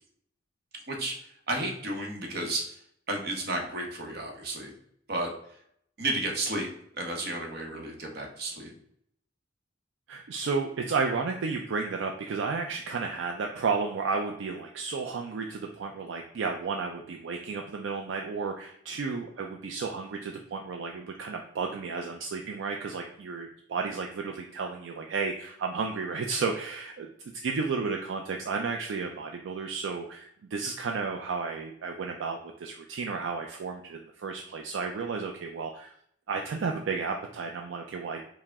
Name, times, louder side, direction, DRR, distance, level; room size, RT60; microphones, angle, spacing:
voice 1, 1.5-2.7 3.1-4.7 5.1-5.3 6.0-6.7 7.0-8.7, right 2 dB, 55° right, 1 dB, 0.9 m, -32 dB
voice 2, 10.1-27.1 27.3-35.9 36.3-38.2, right 4 dB, 75° right, 2 dB, 0.4 m, -32 dB
4.6 x 2.1 x 3.4 m, 0.69 s
head